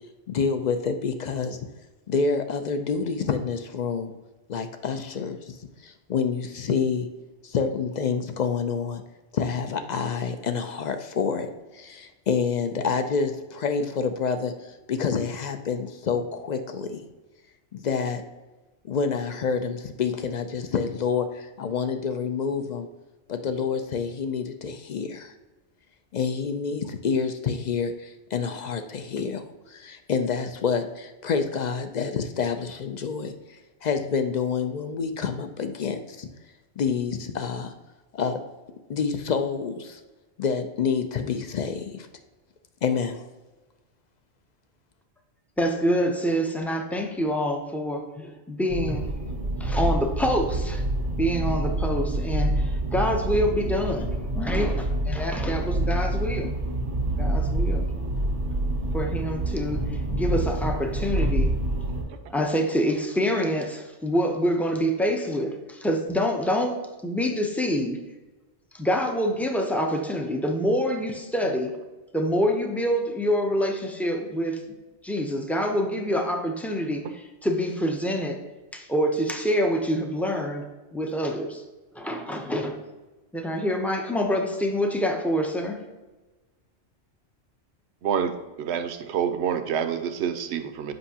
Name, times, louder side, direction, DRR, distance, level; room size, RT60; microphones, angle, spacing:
voice 1, 0.3-1.6 2.1-4.1 4.5-5.6 5.8-7.1 7.4-9.0 9.3-17.0 17.7-18.2 18.8-22.9 23.3-25.3 26.1-36.3 36.8-37.7 38.1-38.4 38.9-40.0 40.4-42.1 42.8-43.2, left 5 dB, 55° left, 8 dB, 0.5 m, -28 dB
voice 2, 45.6-49.2 49.6-50.9 51.2-56.5 57.2-57.9 58.9-61.5 62.3-68.0 68.7-71.7 72.1-74.6 75.0-78.4 78.7-81.6 81.9-82.9 83.3-85.8, equal, ahead, 3 dB, 0.4 m, -26 dB
sound 1, 48.7-62.0, right 1 dB, 90° right, 1.8 m, -27 dB
voice 3, 88.0-88.3 88.6-90.9, right 8 dB, 75° right, 8 dB, 0.9 m, -27 dB
7.9 x 5.5 x 2.8 m, 1.2 s
omnidirectional pair, 1.2 m